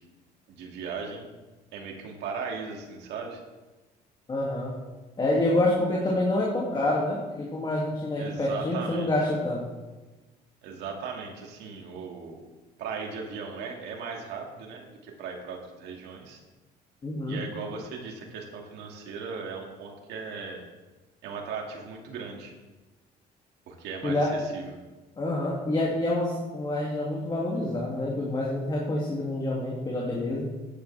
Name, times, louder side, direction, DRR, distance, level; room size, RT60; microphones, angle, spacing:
voice 1, 0.5-1.2 1.7-3.4 8.2-9.1 10.6-12.4 12.8-16.4 17.3-20.6 21.2-22.5 23.7-24.8, right 5 dB, 85° right, 1 dB, 2.4 m, -37 dB
voice 2, 4.3-4.7 5.2-9.7 17.0-17.4 24.0-24.3 25.2-30.5, left 1 dB, 25° left, -4 dB, 2.6 m, -27 dB
14.5 x 10.5 x 3.5 m, 1.2 s
cardioid pair, 110°, 17 cm